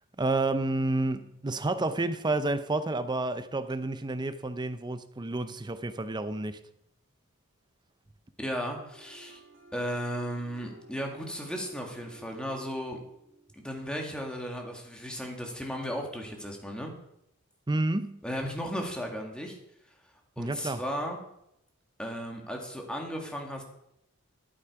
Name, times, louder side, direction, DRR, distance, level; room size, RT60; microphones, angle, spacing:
voice 1, 0.2-6.6 17.7-18.2 20.4-20.8, right 2 dB, 20° right, 0.6 m, -30 dB
voice 2, 8.4-9.4 9.7-13.0 13.5-16.9 18.2-19.6 20.4-21.2 22.0-23.6, equal, 5° left, 1.8 m, -35 dB
sound 1, 8.6-14.5, right 2 dB, 60° right, 3.0 m, -55 dB
11.5 x 8.7 x 4.8 m
head